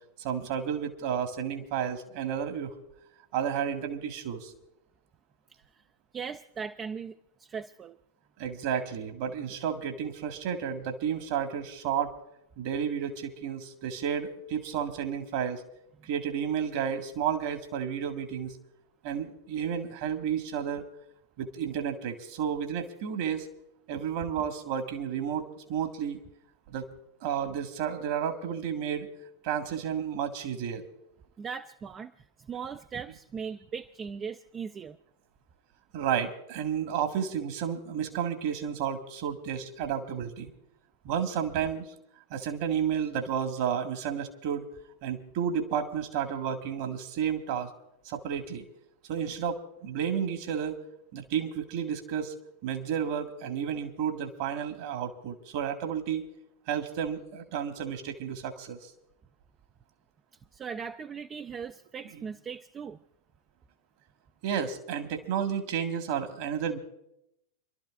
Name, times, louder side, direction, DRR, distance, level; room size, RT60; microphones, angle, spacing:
voice 1, 0.2-2.8 3.3-4.5 8.4-12.1 12.6-15.6 16.0-18.5 19.0-20.8 21.4-23.5 23.9-26.2 26.7-26.8 27.2-29.1 29.4-30.9 35.9-40.5 41.0-41.8 42.3-44.7 45.0-47.7 48.1-48.6 49.1-50.8 51.1-52.3 52.6-56.3 56.7-58.8 64.4-66.8, right 8 dB, 50° right, 6 dB, 1.8 m, -31 dB
voice 2, 6.1-8.0 16.0-16.1 31.4-35.0 60.5-63.0, right 6 dB, 25° right, 9 dB, 0.5 m, -39 dB
29.5 x 12.5 x 2.5 m, 0.80 s
figure-of-eight pair, 90°, 0 cm